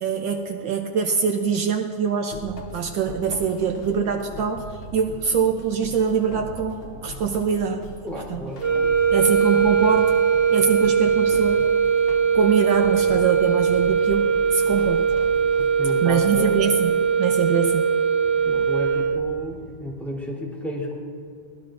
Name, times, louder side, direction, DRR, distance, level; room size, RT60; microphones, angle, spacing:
voice 1, 0.0-7.9 8.3-8.5 9.1-10.1 10.5-11.7 12.3-15.1 16.0-16.9 17.2-17.9, right 6 dB, 70° right, 4 dB, 1.5 m, -24 dB
sound 1, 2.3-16.8, left 1 dB, 55° left, 0.6 m, -41 dB
sound 2, 4.1-19.9, right 1 dB, 35° right, 5.1 m, -49 dB
voice 2, 8.0-8.6 15.8-16.6 18.4-20.9, left 1 dB, ahead, -4 dB, 3.2 m, -32 dB
sound 3, 8.6-19.5, right 6 dB, 55° right, 1.8 m, -20 dB
23.5 x 18.0 x 2.6 m, 2.4 s
omnidirectional pair, 2.2 m